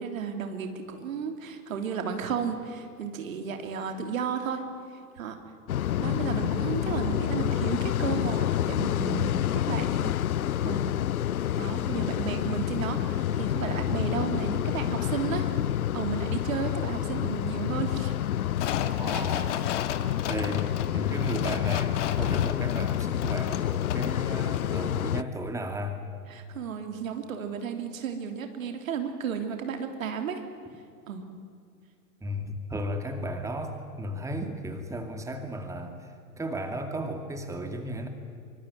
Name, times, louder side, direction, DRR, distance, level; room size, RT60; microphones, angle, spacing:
voice 1, 0.0-4.6 5.2-5.4 6.0-10.1 10.6-10.9 11.6-15.5 15.9-18.1 19.1-19.3 26.3-30.4 31.1-31.2, right 7 dB, 60° right, 6 dB, 3.3 m, -33 dB
sound 1, 5.7-25.2, left 11 dB, 70° left, 0.6 m, -28 dB
sound 2, 18.6-24.2 24.5-24.6, left 10 dB, 50° left, 1.8 m, -35 dB
voice 2, 19.0-19.5 20.3-26.0 32.2-38.1, equal, 5° right, 6 dB, 2.4 m, -34 dB
25.5 x 24.0 x 9.5 m, 2.3 s
figure-of-eight pair, 95°, 46 cm